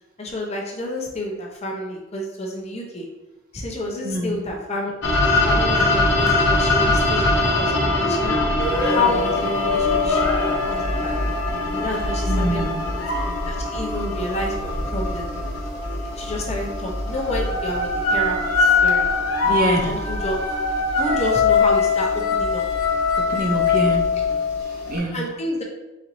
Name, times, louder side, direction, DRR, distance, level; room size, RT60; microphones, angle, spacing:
voice 1, 0.2-3.1 3.5-5.0 5.3-11.1 11.7-12.6 13.4-15.3 16.2-19.1 19.4-19.6 19.9-20.4 21.0-22.7 25.1-25.6, left 2 dB, 30° left, -1 dB, 0.7 m, -29 dB
voice 2, 4.0-4.4 12.3-12.8 19.5-19.9 23.2-24.1 24.7-25.2, right 1 dB, 40° right, 0 dB, 0.6 m, -25 dB
sound 1, 5.0-25.0, left 1 dB, 55° left, 0.9 m, -24 dB
sound 2, 8.6-15.5 16.3-16.6 17.0-25.0, left 5 dB, 90° left, 0.9 m, -23 dB
4.5 x 4.1 x 2.6 m, 1.0 s
head